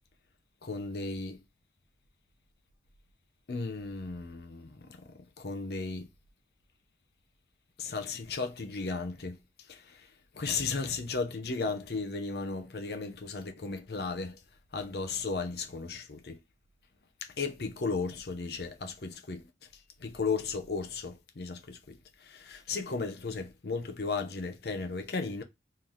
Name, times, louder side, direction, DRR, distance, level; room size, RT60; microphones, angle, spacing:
voice 1, 0.6-1.4 3.5-6.1 7.8-9.4 9.7-10.1 10.3-14.4 14.7-16.4 17.4-19.4 20.0-25.4, left 4 dB, 65° left, 0.6 m, -35 dB
3.2 x 2.8 x 3.7 m
head